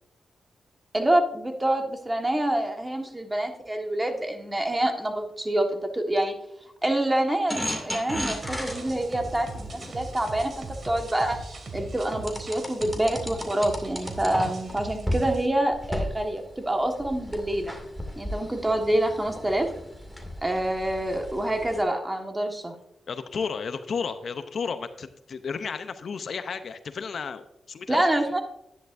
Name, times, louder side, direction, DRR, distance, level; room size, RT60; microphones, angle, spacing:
voice 1, 0.9-6.3 6.8-11.4 11.7-17.7 18.2-19.7 20.4-22.7 27.9-28.4, right 1 dB, 20° right, 4 dB, 1.4 m, -26 dB
sound 1, 7.5-11.4 12.3-14.7 15.1-15.2 15.7-21.8, left 1 dB, ahead, 2.3 m, -35 dB
sound 2, 8.1-15.5, right 3 dB, 60° right, 2.2 m, -40 dB
voice 2, 23.1-28.3, left 5 dB, 65° left, 10 dB, 0.6 m, -33 dB
11.0 x 10.0 x 2.6 m, 0.81 s
cardioid pair, 70°, 0 cm